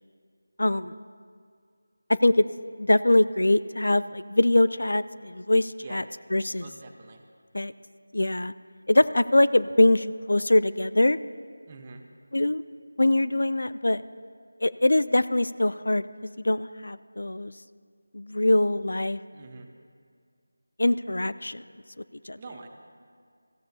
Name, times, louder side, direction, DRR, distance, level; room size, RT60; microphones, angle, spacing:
voice 1, 0.6-0.9 2.2-2.4 2.8-6.0 6.3-6.6 7.5-7.7 8.1-8.5 8.9-11.2 12.3-12.6 13.0-14.0 14.6-16.1 16.4-17.5 18.1-19.2 20.8-21.6 22.3-22.4, left 1 dB, 75° left, 15 dB, 0.4 m, -23 dB
voice 2, 6.6-7.2 11.7-12.1 19.3-19.7 22.4-22.7, right 4 dB, 25° right, 4 dB, 1.0 m, -45 dB
22.5 x 15.0 x 2.8 m, 2.1 s
figure-of-eight pair, 170°, 0 cm